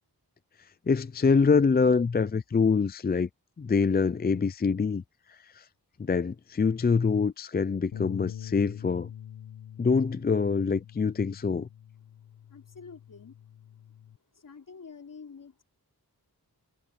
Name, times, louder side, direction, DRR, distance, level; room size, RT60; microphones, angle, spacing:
voice 1, 0.9-3.3 3.6-5.0 5.5-5.6 6.0-9.1 9.8-11.7, left 5 dB, 25° left, 0.4 m, -25 dB
Bass guitar, 7.9-14.2, left 10 dB, 90° left, 0.9 m, -44 dB
voice 2, 12.5-13.4 14.3-15.6, left 5 dB, 55° left, 3.6 m, -47 dB
wide cardioid pair, 105°, 38 cm